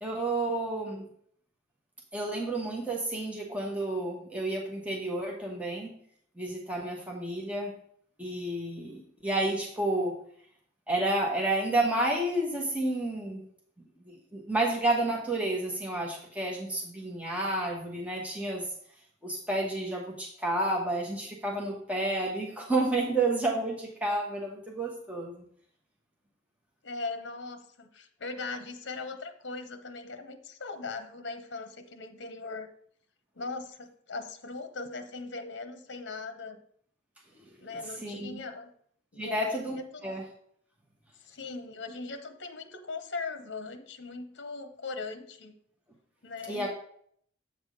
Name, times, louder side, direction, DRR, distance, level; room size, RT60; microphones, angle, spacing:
voice 1, 0.0-1.0 2.1-5.9 6.4-7.7 8.2-10.2 10.9-13.4 14.1-18.6 19.2-25.4 38.0-38.4 39.2-40.2 46.5-46.7, right 2 dB, 5° right, -2 dB, 1.1 m, -30 dB
voice 2, 26.8-32.7 33.4-36.6 37.6-38.7 39.1-40.1 41.2-45.6 46.2-46.7, left 3 dB, 65° left, 8 dB, 0.8 m, -39 dB
8.0 x 3.5 x 6.4 m, 0.64 s
head